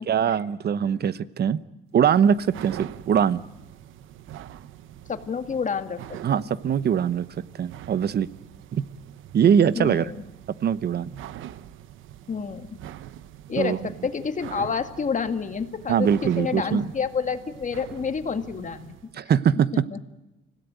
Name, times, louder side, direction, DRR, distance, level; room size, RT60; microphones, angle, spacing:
voice 1, 0.0-1.6 1.9-3.4 6.2-7.2 7.6-8.3 8.7-8.8 9.3-10.1 10.6-11.2 13.6-13.8 15.9-16.8 19.1-19.8, right 8 dB, 55° right, 16 dB, 0.9 m, -22 dB
sound 1, 2.0-19.1, right 12 dB, 85° right, 0.9 m, -44 dB
voice 2, 5.1-6.2 9.7-10.2 12.3-12.7 13.5-19.0 19.7-20.0, left 6 dB, 40° left, 8 dB, 2.0 m, -29 dB
26.0 x 17.0 x 9.2 m, 1.0 s
cardioid pair, 90°, 20 cm